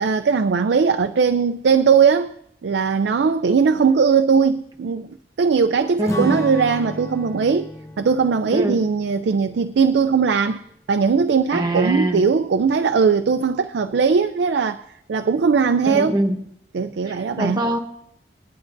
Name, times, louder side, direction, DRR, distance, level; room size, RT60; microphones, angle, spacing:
voice 1, 0.0-2.3 2.6-5.1 5.4-7.7 8.0-10.6 10.9-16.2 16.7-17.6, right 5 dB, 75° right, 0.4 m, -19 dB
voice 2, 6.0-6.4 8.5-8.8 11.5-12.2 15.8-16.4 17.1-17.8, right 1 dB, 25° right, 1.1 m, -23 dB
Strum, 6.1-10.7, left 1 dB, 20° left, 0.8 m, -35 dB
19.5 x 10.5 x 2.6 m
head